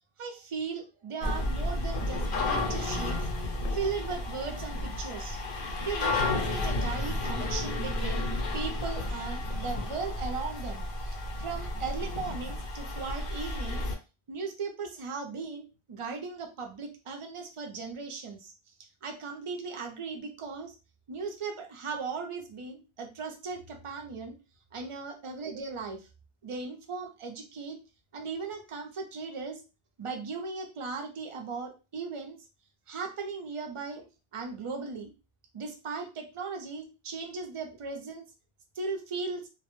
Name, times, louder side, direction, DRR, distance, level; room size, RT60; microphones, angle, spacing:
voice 1, 0.2-3.3 3.7-5.4 5.8-8.2 8.5-13.9 14.3-18.5 19.0-20.8 21.1-24.3 24.7-26.1 26.4-27.8 28.1-29.6 30.0-32.4 32.9-35.1 35.5-38.2 38.8-39.5, right 4 dB, 50° right, 4 dB, 0.4 m, -37 dB
sound 1, 1.2-13.9, left 2 dB, 60° left, 0.7 m, -32 dB
2.1 x 2.0 x 2.9 m, 0.31 s
omnidirectional pair, 1.1 m